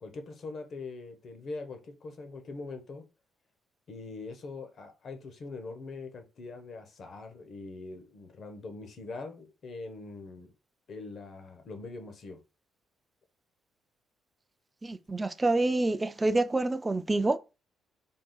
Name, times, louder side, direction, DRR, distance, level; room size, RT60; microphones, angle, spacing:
voice 1, 0.0-3.0 3.9-10.5 10.9-12.4, left 3 dB, 55° left, 1.0 m, -42 dB
voice 2, 14.8-17.4, right 2 dB, 20° right, 0.4 m, -27 dB
3.7 x 2.4 x 3.9 m
cardioid pair, 90°, 0 cm